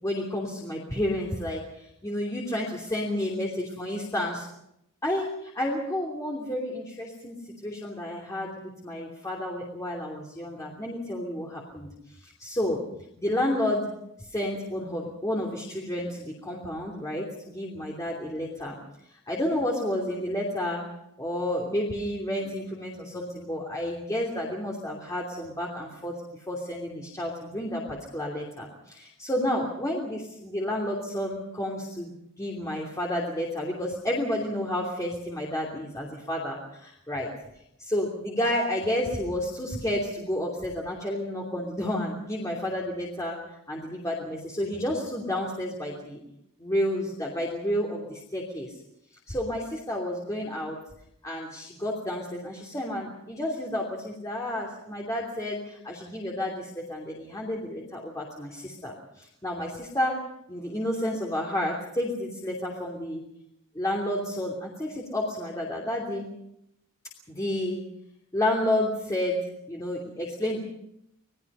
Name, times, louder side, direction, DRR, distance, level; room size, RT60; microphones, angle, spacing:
voice 1, 0.0-4.5 5.0-7.4 7.6-12.8 13.2-13.9 14.2-18.8 19.1-20.8 21.2-26.1 26.5-37.3 37.8-46.2 46.6-48.7 49.3-50.8 51.2-60.2 60.5-63.2 63.7-66.3 67.3-67.8 68.3-69.4 69.7-70.6, left 1 dB, 15° left, -2 dB, 3.0 m, -31 dB
27.0 x 19.5 x 5.5 m, 0.79 s
head